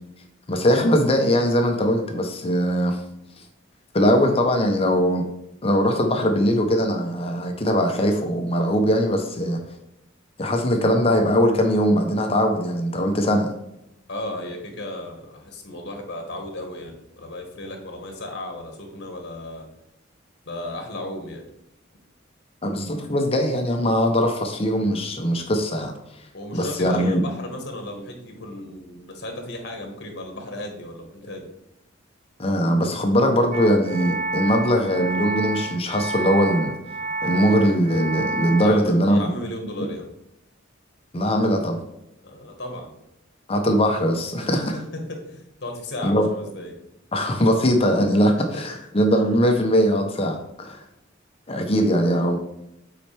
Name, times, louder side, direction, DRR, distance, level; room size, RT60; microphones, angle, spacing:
voice 1, 0.5-3.0 3.9-5.3 5.6-9.6 10.4-13.5 22.6-25.9 26.5-27.2 32.4-36.7 37.2-39.3 41.1-41.8 43.5-44.8 46.0-46.3 47.1-50.8 51.5-52.4, equal, 30° left, 4 dB, 0.8 m, -21 dB
voice 2, 14.1-19.7 20.4-21.4 26.3-31.5 38.6-40.1 42.2-43.0 44.4-46.7 48.4-48.6, left 1 dB, 55° left, 3 dB, 1.5 m, -35 dB
sound 1, 33.5-38.7, right 2 dB, 40° right, 0.4 m, -29 dB
8.3 x 4.3 x 3.4 m, 0.84 s
head